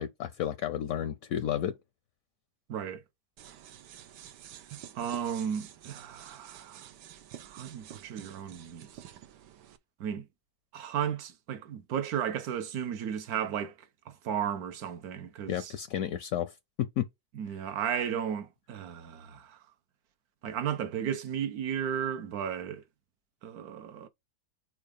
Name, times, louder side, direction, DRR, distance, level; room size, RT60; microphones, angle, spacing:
voice 1, 0.0-1.8 15.5-17.1, left 10 dB, 70° left, 0.9 m, -32 dB
voice 2, 2.7-3.0 4.9-6.9 7.4-9.0 10.0-10.3 10.7-13.7 14.1-15.7 17.4-19.6 20.4-22.8 23.4-24.1, right 8 dB, 70° right, 1.3 m, -34 dB
sound 1, 3.4-9.8, right 11 dB, 90° right, 1.3 m, -49 dB
4.8 x 4.7 x 5.0 m
omnidirectional pair, 1.8 m